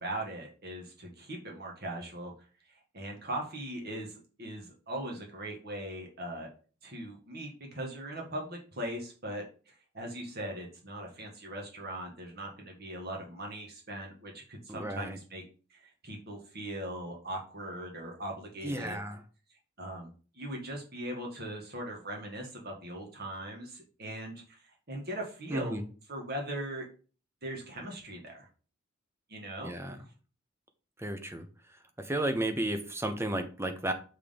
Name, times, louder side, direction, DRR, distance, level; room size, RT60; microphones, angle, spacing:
voice 1, 0.0-2.3 2.7-6.5 6.8-15.4 15.7-19.0 19.8-24.6 24.9-25.8 26.1-26.8 27.4-28.5 29.3-29.7, right 1 dB, 50° right, 1 dB, 1.7 m, -40 dB
voice 2, 14.7-15.2 18.6-19.2 25.5-25.8 29.6-30.0 31.0-31.5 32.0-33.9, right 1 dB, 15° right, 7 dB, 0.8 m, -33 dB
6.6 x 3.7 x 5.2 m, 0.37 s
head